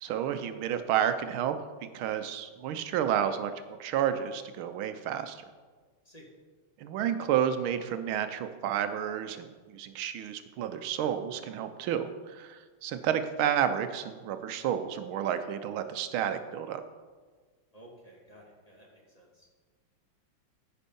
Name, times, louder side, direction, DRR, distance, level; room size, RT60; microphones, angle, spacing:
voice 1, 0.0-1.6 1.9-3.5 3.8-5.4 6.8-16.8, right 9 dB, 90° right, 9 dB, 1.6 m, -31 dB
voice 2, 17.7-19.5, equal, 20° left, -2 dB, 1.7 m, -54 dB
14.5 x 5.3 x 5.4 m, 1.4 s
omnidirectional pair, 2.2 m